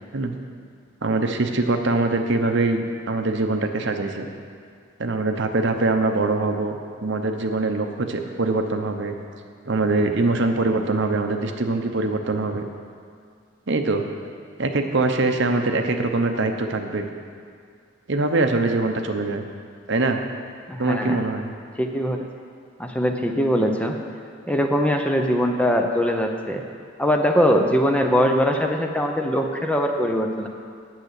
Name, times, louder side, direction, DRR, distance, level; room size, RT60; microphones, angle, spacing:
voice 1, 1.0-4.3 5.0-9.1 9.7-12.7 13.7-14.0 14.6-17.1 18.1-19.5 19.9-20.2 20.8-21.5, right 3 dB, 60° right, 5 dB, 0.8 m, -23 dB
voice 2, 20.7-21.2 21.8-22.3 22.8-24.0 24.5-26.6 27.0-30.5, equal, 5° left, 3 dB, 0.6 m, -21 dB
9.1 x 6.8 x 8.2 m, 2.2 s
head